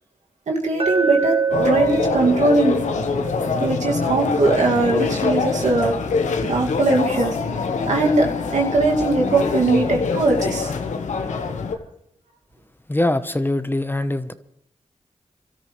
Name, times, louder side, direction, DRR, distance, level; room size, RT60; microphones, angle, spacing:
voice 1, 0.5-2.8 3.6-5.9 6.4-7.3 7.9-8.3 8.5-10.7, right 2 dB, 75° right, 0 dB, 2.3 m, -20 dB
Glass, 0.8-4.9, right 6 dB, 50° right, 1.2 m, -26 dB
sound 1, 1.5-11.8, left 4 dB, 85° left, 1.2 m, -24 dB
voice 2, 12.9-14.3, left 1 dB, 15° left, 11 dB, 1.0 m, -22 dB
26.0 x 13.0 x 3.3 m, 0.69 s
cardioid pair, 40°, 12 cm